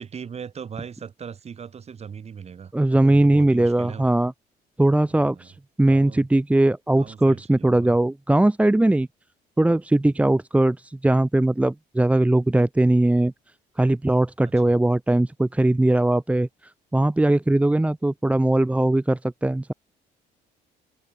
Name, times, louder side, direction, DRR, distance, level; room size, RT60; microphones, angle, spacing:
voice 1, 0.0-4.1 5.1-5.5 5.8-6.2 7.0-8.0 14.4-14.8, right 7 dB, 40° right, 5.7 m, -39 dB
voice 2, 2.7-4.3 4.8-5.5 5.8-9.1 9.6-13.3 13.8-16.5 16.9-19.7, right 1 dB, 10° right, 1.1 m, -20 dB
cardioid pair, 110°, 17 cm